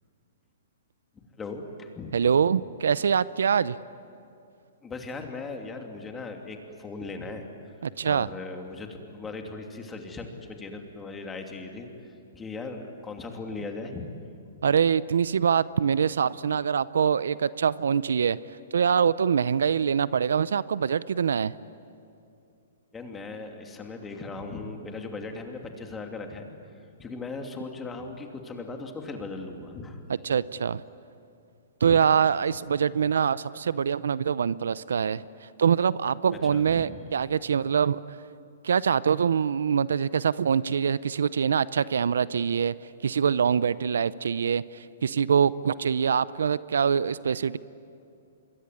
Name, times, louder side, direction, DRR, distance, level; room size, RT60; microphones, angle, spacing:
voice 1, 1.4-2.2 4.8-7.5 8.0-11.9 12.3-14.1 14.6-14.7 22.9-30.0 31.8-32.0 36.4-37.0, left 3 dB, 15° left, 3 dB, 2.8 m, -38 dB
voice 2, 2.1-3.8 7.8-8.3 14.6-18.4 18.7-21.6 30.2-30.8 31.8-35.2 35.6-38.0 38.6-42.7 43.0-47.6, right 7 dB, 80° right, 18 dB, 0.6 m, -24 dB
26.5 x 22.0 x 9.7 m, 2.6 s
hypercardioid pair, 140°, 0 cm